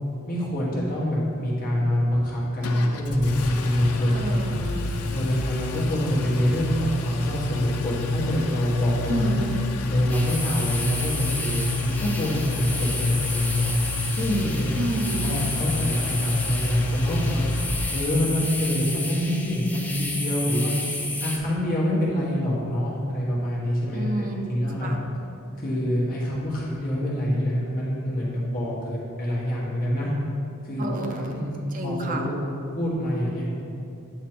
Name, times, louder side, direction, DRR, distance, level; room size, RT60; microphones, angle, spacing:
voice 1, 0.3-4.4 5.1-9.3 9.9-13.7 14.1-14.8 15.2-17.4 17.9-20.8 21.2-24.9 25.6-30.1 30.6-32.4 32.8-33.4, equal, 40° left, -7 dB, 1.4 m, -25 dB
Engine, 2.6-18.3, left 2 dB, 90° left, 0.5 m, -29 dB
voice 2, 4.1-4.9 9.1-9.6 14.8-15.3 23.9-25.0 30.8-31.4 31.7-32.3, right 2 dB, 40° right, 2 dB, 0.6 m, -30 dB
sound 1, 10.1-21.4, left 2 dB, 5° left, 0.5 m, -32 dB
8.9 x 3.0 x 4.4 m, 2.6 s
head